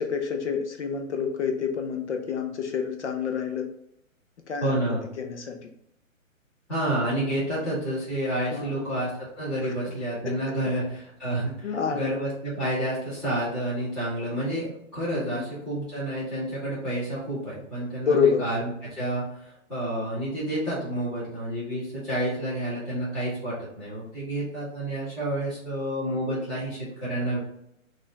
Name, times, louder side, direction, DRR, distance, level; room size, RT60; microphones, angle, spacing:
voice 1, 0.0-3.7 4.5-4.7 5.2-5.7 7.7-7.8 8.5-8.9 9.6-9.7 10.2-10.3 11.6-12.1 15.1-15.4 18.0-18.4, left 6 dB, 60° left, 4 dB, 0.6 m, -28 dB
voice 2, 4.6-5.0 6.7-27.4, right 1 dB, ahead, -15 dB, 0.8 m, -29 dB
4.2 x 2.4 x 3.8 m, 0.78 s
hypercardioid pair, 165°, 40 cm